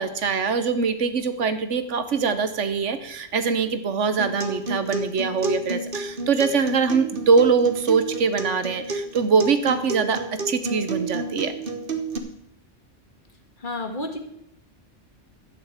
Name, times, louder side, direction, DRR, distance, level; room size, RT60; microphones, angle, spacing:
voice 1, 0.0-10.2 10.5-11.5, right 5 dB, 75° right, 10 dB, 1.4 m, -23 dB
Acoustic guitar, 4.2-12.2, right 3 dB, 50° right, 1.4 m, -31 dB
voice 2, 13.6-14.2, left 2 dB, 45° left, 5 dB, 1.8 m, -30 dB
12.5 x 6.6 x 8.2 m, 0.77 s
omnidirectional pair, 1.2 m